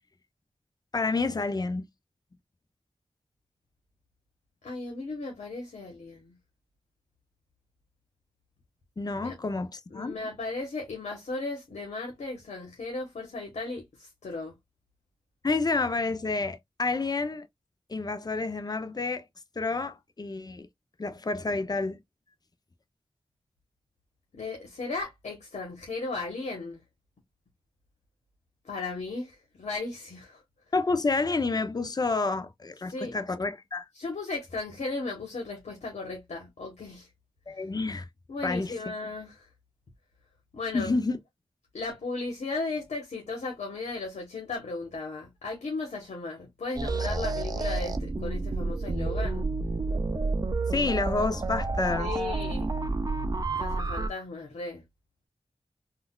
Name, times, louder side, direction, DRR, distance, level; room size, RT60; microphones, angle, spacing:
voice 1, 0.9-1.9 9.0-10.1 15.4-17.5 17.9-19.2 19.6-20.7 21.0-22.0 30.7-33.8 37.5-38.1 38.4-38.7 40.7-41.2 50.7-52.1, left 3 dB, 35° left, 0.5 m, -29 dB
voice 2, 4.6-6.3 9.2-9.4 9.9-14.5 24.3-26.8 28.6-30.4 32.9-33.2 33.9-37.1 38.3-39.5 40.5-40.9 41.7-49.5 52.0-52.8 53.6-54.8, left 3 dB, 90° left, 1.0 m, -36 dB
sound 1, 46.8-54.1, right 3 dB, 35° right, 0.4 m, -30 dB
3.8 x 2.3 x 2.3 m
wide cardioid pair, 65°, 12 cm